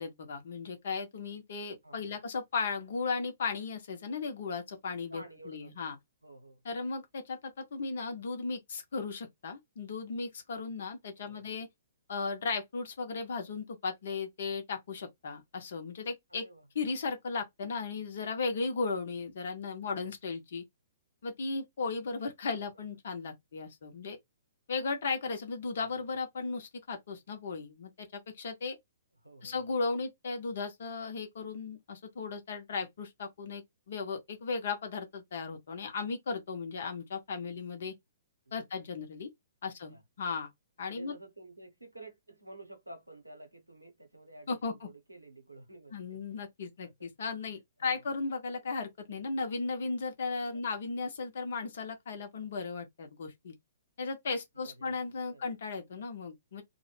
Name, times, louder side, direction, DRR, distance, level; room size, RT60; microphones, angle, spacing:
voice 1, 0.0-6.0 6.6-11.7 12.1-16.4 16.7-20.6 21.2-24.2 24.7-28.8 29.4-37.9 38.5-39.3 39.6-40.5 40.8-41.1 44.5-44.9 45.9-53.5 54.0-56.6, left 4 dB, 55° left, 0.8 m, -36 dB
voice 2, 1.8-2.2 5.1-5.7 6.2-6.6 11.2-11.5 16.3-16.7 19.8-20.1 22.6-22.8 25.6-25.9 29.2-29.6 37.5-37.6 38.5-38.6 39.6-40.0 40.9-46.2 46.8-47.1 47.9-48.1 54.5-55.0 55.3-55.5, right 2 dB, 90° right, 0.8 m, -51 dB
2.1 x 2.0 x 3.1 m
figure-of-eight pair, 120°, 0 cm